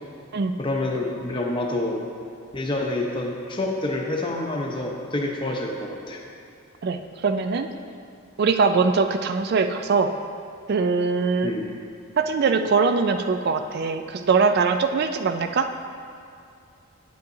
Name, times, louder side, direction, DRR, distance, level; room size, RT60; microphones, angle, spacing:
voice 1, 0.6-2.0 2.5-6.2 11.4-11.7, left 2 dB, 20° left, 0 dB, 0.7 m, -27 dB
voice 2, 6.8-7.7 8.4-10.1 10.7-11.5 12.2-15.7, right 4 dB, 45° right, 8 dB, 0.3 m, -22 dB
9.2 x 8.2 x 2.6 m, 2.5 s
head